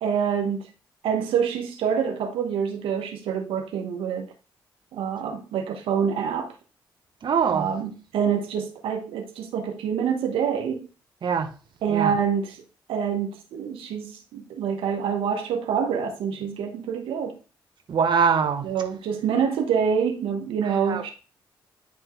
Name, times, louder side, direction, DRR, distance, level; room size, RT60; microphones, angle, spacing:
voice 1, 0.0-0.7 1.0-4.3 4.9-6.5 7.5-10.9 11.8-12.6 12.9-17.4 18.6-21.1, right 7 dB, 80° right, 1.1 m, -26 dB
voice 2, 7.2-7.7 11.2-11.5 11.9-12.1 17.9-18.7 20.9-21.1, right 6 dB, 60° right, 1.1 m, -23 dB
10.5 x 3.6 x 3.1 m
supercardioid pair, 50°, 9 cm